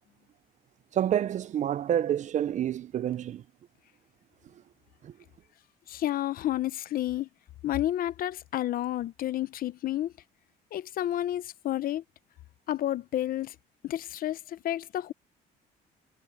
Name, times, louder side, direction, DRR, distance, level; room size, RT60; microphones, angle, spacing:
voice 1, 0.9-3.4 5.0-5.1, right 10 dB, 45° right, 0.5 m, -28 dB
voice 2, 5.9-7.3 7.6-10.1 10.7-12.0 12.7-13.5 13.8-15.1, left 13 dB, 60° left, 0.7 m, -30 dB
cardioid pair, 110°, 17 cm